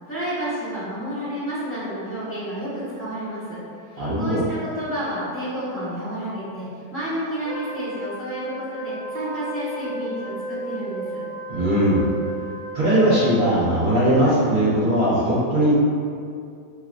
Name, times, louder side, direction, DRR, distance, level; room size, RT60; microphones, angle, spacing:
voice 1, 0.1-3.6 3.9-11.2, right 1 dB, 10° left, -11 dB, 1.2 m, -30 dB
voice 2, 4.0-4.4 11.5-12.1 12.7-15.7, right 1 dB, 55° right, -10 dB, 1.4 m, -19 dB
Wind instrument woodwind instrument, 7.4-13.7, right 1 dB, 55° left, 0.9 m, -34 dB
5.8 x 2.9 x 2.5 m, 2.4 s
omnidirectional pair, 1.9 m